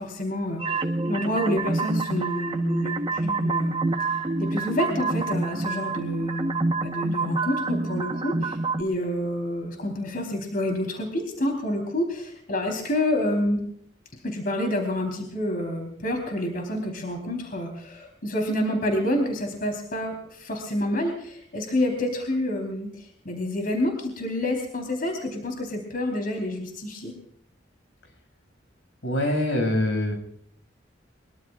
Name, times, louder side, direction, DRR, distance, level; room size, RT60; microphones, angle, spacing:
voice 1, 0.0-13.6 14.2-27.1, left 1 dB, 50° left, 3 dB, 4.0 m, -28 dB
sound 1, 0.6-8.8, right 3 dB, 30° right, 1.3 m, -27 dB
voice 2, 29.0-30.1, left 1 dB, 85° left, 4 dB, 6.7 m, -24 dB
23.5 x 23.5 x 2.5 m, 0.68 s
head